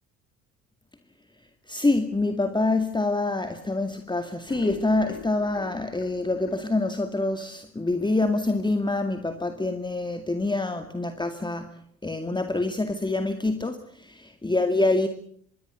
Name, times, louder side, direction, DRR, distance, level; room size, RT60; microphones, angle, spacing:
voice 1, 1.7-11.7 12.0-14.1 14.4-15.1, left 2 dB, 10° left, 8 dB, 2.1 m, -26 dB
sound 1, 4.3-7.5 7.9-8.0 8.3-8.4 8.8-8.9, left 8 dB, 60° left, 3.5 m, -45 dB
25.5 x 22.5 x 6.9 m, 0.64 s
figure-of-eight pair, 50°, 42 cm